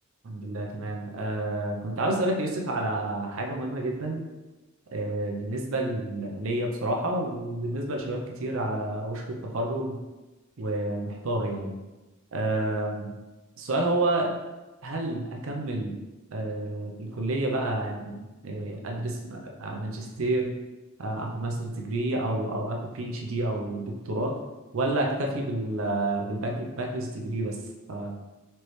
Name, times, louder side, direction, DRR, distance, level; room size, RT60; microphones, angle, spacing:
voice 1, 0.2-4.2 4.9-10.0 10.6-11.7 12.3-13.1 13.6-14.3 14.8-16.0 16.3-20.5 21.0-24.3 24.7-27.6 27.9-28.1, right 2 dB, 65° right, 1 dB, 0.6 m, -29 dB
4.4 x 3.2 x 3.1 m, 1.1 s
head